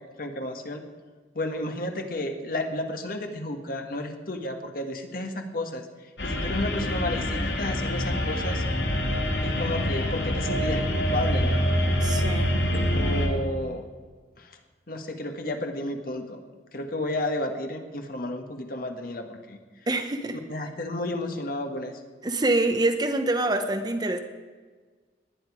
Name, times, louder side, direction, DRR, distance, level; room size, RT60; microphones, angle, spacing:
voice 1, 0.2-0.8 1.3-5.9 6.2-8.6 9.4-11.6 12.7-13.8 14.4-14.6 14.9-16.4 16.7-19.6 20.5-22.0, left 1 dB, 55° left, 5 dB, 1.5 m, -32 dB
sound 1, 6.2-13.3, equal, 80° left, 2.3 m, -26 dB
voice 2, 12.0-12.5 19.9-20.4 22.2-24.2, right 2 dB, 25° right, 7 dB, 0.9 m, -25 dB
19.5 x 10.5 x 4.9 m, 1.5 s
head